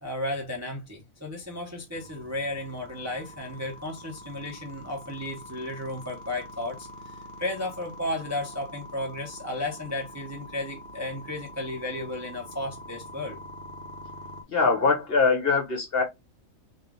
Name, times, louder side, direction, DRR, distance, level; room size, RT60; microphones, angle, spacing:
voice 1, 0.0-13.4, left 1 dB, 15° right, 0.7 m, -34 dB
sound 1, 1.9-14.4, left 1 dB, 50° right, 1.0 m, -44 dB
voice 2, 14.5-16.0, left 4 dB, 45° left, 1.4 m, -22 dB
3.6 x 2.6 x 3.3 m
omnidirectional pair, 1.4 m